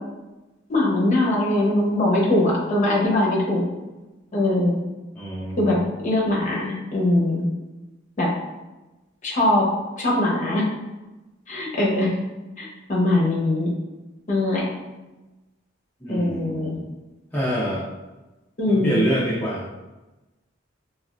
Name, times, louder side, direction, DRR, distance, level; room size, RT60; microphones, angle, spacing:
voice 1, 0.7-3.6 4.3-4.8 5.6-5.8 6.0-7.5 8.2-8.3 9.2-9.6 10.0-10.6 11.5-12.1 12.6-13.7 14.3-14.7 16.1-16.7 18.6-18.9, left 1 dB, 40° left, -4 dB, 0.8 m, -21 dB
voice 2, 5.2-5.8 16.0-16.9 17.3-17.9 18.7-19.7, right 1 dB, 10° left, -8 dB, 0.4 m, -26 dB
3.3 x 2.3 x 2.4 m, 1.1 s
head